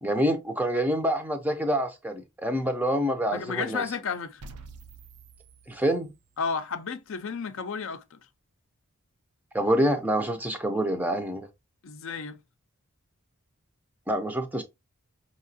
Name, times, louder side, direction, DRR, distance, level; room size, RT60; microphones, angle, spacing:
voice 1, 0.0-3.8 5.7-6.1 9.5-11.5 14.1-14.6, equal, 5° right, 0.5 m, -26 dB
voice 2, 3.3-4.4 6.4-8.2 11.8-12.4, left 5 dB, 60° left, 0.5 m, -32 dB
sound 1, 4.4-6.5, right 3 dB, 90° right, 0.6 m, -48 dB
5.5 x 2.9 x 2.7 m
head